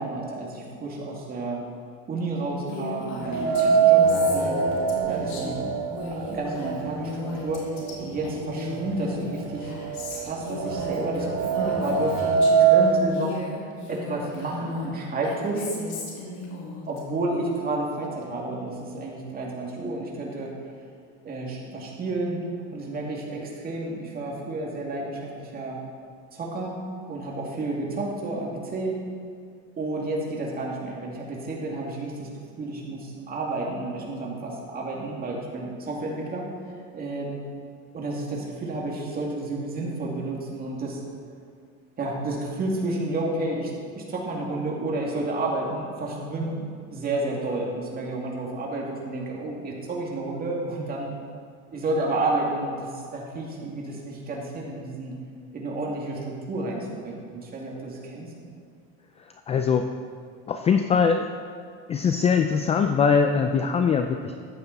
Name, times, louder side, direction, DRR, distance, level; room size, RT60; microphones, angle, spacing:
voice 1, 0.0-1.6 2.1-4.6 5.0-5.7 6.1-7.2 7.4-7.7 8.0-9.7 10.1-15.7 16.9-20.5 21.2-22.4 22.7-25.8 26.3-26.8 27.1-29.0 29.8-32.3 32.6-36.5 36.9-37.4 37.9-41.0 42.0-51.1 51.7-55.1 55.5-58.3, right 2 dB, 25° right, -2 dB, 2.4 m, -31 dB
Female speech woman speaking, 2.7-12.8 13.1-17.0, left 2 dB, 60° left, 2.7 m, -36 dB
sound 1, 3.3-7.3 7.7-7.8 8.7-8.8 9.2-13.0, right 6 dB, 55° right, 1.4 m, -23 dB
voice 2, 59.5-59.9 60.5-61.3 61.9-64.2, left 6 dB, 20° left, 6 dB, 0.3 m, -21 dB
14.0 x 9.3 x 4.1 m, 2.2 s
cardioid pair, 145°, 33 cm